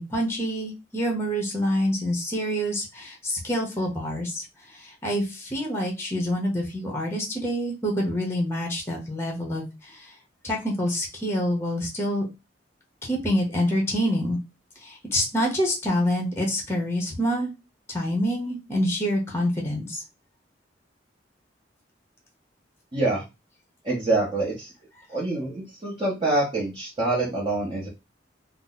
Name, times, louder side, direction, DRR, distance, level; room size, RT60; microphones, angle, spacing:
voice 1, 0.0-10.1 10.4-12.3 13.0-14.4 14.8-17.5 17.9-20.0, equal, 15° left, 0 dB, 0.7 m, -27 dB
voice 2, 22.9-23.2 23.8-24.7 25.1-27.9, right 2 dB, 25° right, -6 dB, 0.8 m, -26 dB
2.7 x 2.0 x 3.9 m, 0.25 s
head